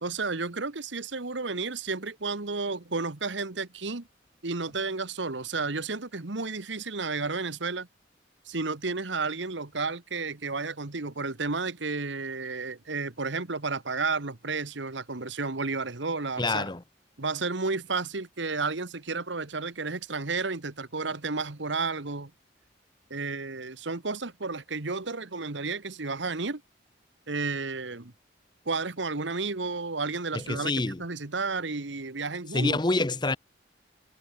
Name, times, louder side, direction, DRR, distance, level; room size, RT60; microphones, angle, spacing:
voice 1, 0.0-4.1 4.4-7.9 8.4-16.7 17.2-22.3 23.1-26.6 27.3-28.1 28.6-32.8, right 4 dB, 75° right, 1.5 m, -32 dB
voice 2, 16.4-16.8 30.3-31.0 32.5-33.4, left 2 dB, 25° left, 0.9 m, -27 dB
head